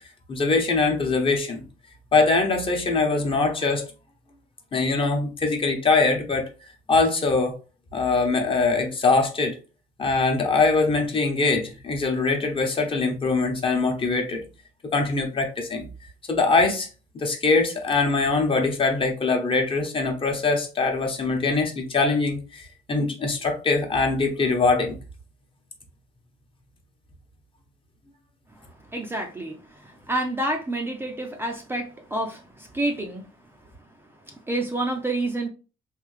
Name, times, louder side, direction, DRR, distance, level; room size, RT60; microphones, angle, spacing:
voice 1, 0.3-1.6 2.1-3.9 4.7-6.5 6.9-7.5 7.9-9.6 10.0-14.4 14.9-15.9 16.3-16.9 17.1-25.0, left 3 dB, 30° left, 3 dB, 1.0 m, -22 dB
voice 2, 28.5-35.5, right 1 dB, 15° right, 2 dB, 0.5 m, -29 dB
3.3 x 2.8 x 3.2 m, 0.33 s
cardioid pair, 110°, 17 cm